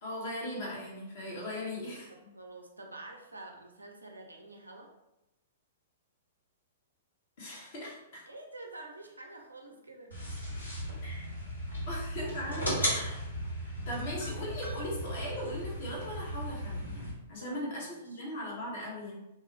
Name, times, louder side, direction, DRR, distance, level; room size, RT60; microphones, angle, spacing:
voice 1, 0.0-2.1 7.4-8.2 11.0-11.3 11.9-13.3 13.6-19.2, left 1 dB, 55° left, -4 dB, 1.0 m, -39 dB
voice 2, 2.1-4.9 8.3-10.6 17.4-18.2, right 2 dB, 85° right, 2 dB, 0.4 m, -48 dB
sound 1, 10.1-17.1, equal, 90° left, 1.5 m, -36 dB
2.6 x 2.0 x 2.6 m, 0.90 s
figure-of-eight pair, 110°, 0 cm